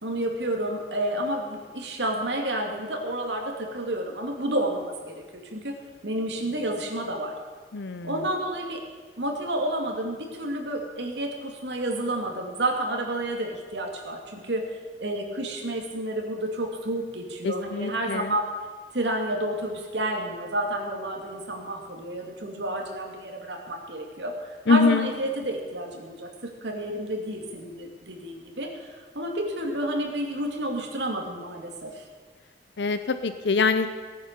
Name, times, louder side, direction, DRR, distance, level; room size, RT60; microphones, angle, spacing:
voice 1, 0.0-5.2 5.5-5.7 6.0-7.3 8.0-8.8 9.2-14.6 15.0-18.5 18.9-32.1, right 1 dB, 75° right, 2 dB, 2.6 m, -30 dB
voice 2, 7.7-8.2 17.4-18.4 24.7-25.1 32.8-33.9, left 4 dB, 70° left, 10 dB, 0.7 m, -24 dB
18.0 x 9.3 x 6.8 m, 1.5 s
head